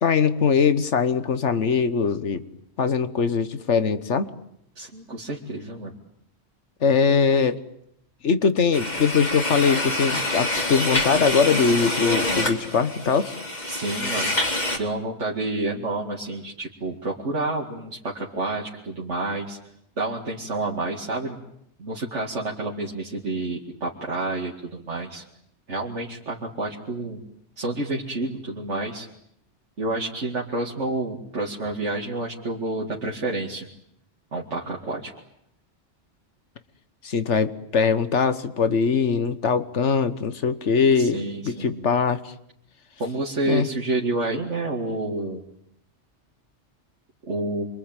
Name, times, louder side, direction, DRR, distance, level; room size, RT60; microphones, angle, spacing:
voice 1, 0.0-2.4 2.8-4.3 6.8-7.6 8.2-13.3 37.0-42.2 43.5-43.7, left 5 dB, 80° left, 12 dB, 1.6 m, -21 dB
voice 2, 4.8-6.0 13.7-14.4 14.7-19.6 20.0-21.4 21.8-25.2 25.7-27.2 27.6-29.1 29.8-33.7 34.3-35.1 40.9-41.8 43.0-45.4 47.3-47.7, right 2 dB, 90° right, -3 dB, 2.7 m, -29 dB
sound 1, 8.7-14.8, left 1 dB, 40° left, 2.9 m, -26 dB
27.0 x 23.5 x 9.1 m, 0.76 s
omnidirectional pair, 1.2 m